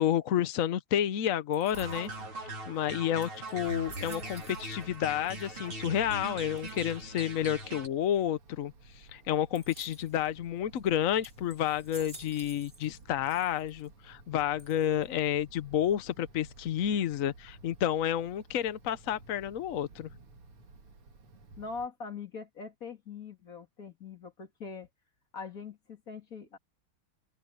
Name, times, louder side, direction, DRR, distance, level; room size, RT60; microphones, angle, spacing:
voice 1, 0.0-2.1 2.4-20.1, left 10 dB, 65° left, 0.8 m, -30 dB
sound 1, 1.5-2.3 2.8-2.9 3.2-5.0 5.2-5.8 6.6-7.0 9.5-10.2 10.8-10.9 11.2-13.0 13.2-13.9 14.6-15.2, right 2 dB, 20° right, 3.8 m, -52 dB
sound 2, 1.7-7.9, right 2 dB, 70° right, 5.6 m, -40 dB
Wind, 3.5-21.9, right 3 dB, 85° right, 3.4 m, -55 dB
voice 2, 21.6-24.9 25.3-26.6, left 5 dB, 40° left, 3.1 m, -42 dB
open air
omnidirectional pair, 2.4 m